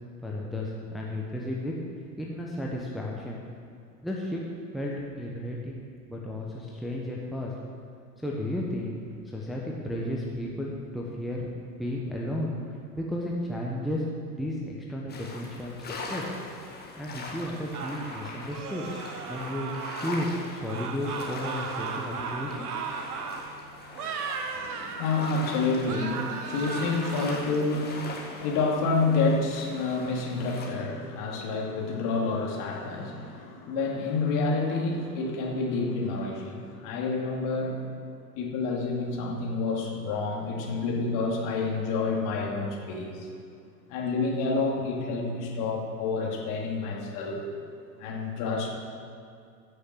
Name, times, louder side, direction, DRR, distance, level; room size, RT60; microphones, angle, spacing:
voice 1, 0.2-1.7 2.2-3.4 4.0-4.4 4.7-7.5 8.2-11.5 11.8-16.3 17.0-18.9 19.3-22.8, left 1 dB, ahead, -3 dB, 1.0 m, -33 dB
sound 1, 15.1-30.7, left 3 dB, 20° left, 1.9 m, -42 dB
sound 2, 17.7-20.4 20.7-23.5 23.9-25.5 25.8-27.4, right 5 dB, 60° right, 1.3 m, -36 dB
voice 2, 24.5-37.8 38.4-43.3 43.9-47.5 48.0-48.8, left 3 dB, 40° left, -1 dB, 2.4 m, -29 dB
15.0 x 6.6 x 6.5 m, 2.4 s
figure-of-eight pair, 95°, 50 cm